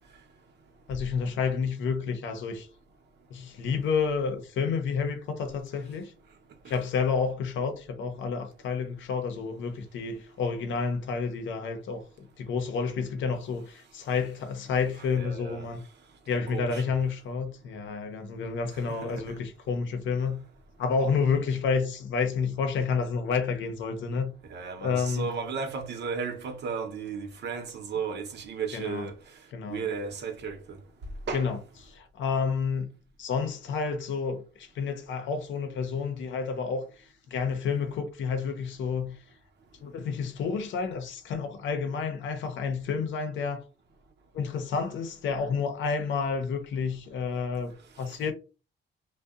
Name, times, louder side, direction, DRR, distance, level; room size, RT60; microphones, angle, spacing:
voice 1, 0.9-2.7 3.3-6.1 6.7-15.8 16.3-20.4 20.8-24.3 24.8-25.2 28.7-29.0 29.5-29.8 31.3-31.6 31.9-32.9 33.2-39.2 39.8-43.6 44.3-48.3, left 5 dB, 70° left, 0.7 m, -30 dB
voice 2, 14.9-15.7 16.3-16.8 18.7-19.2 24.5-29.1 29.7-30.8 31.3-31.5 48.1-48.2, right 5 dB, 60° right, 0.8 m, -35 dB
2.7 x 2.2 x 2.3 m
cardioid pair, 90°, 20 cm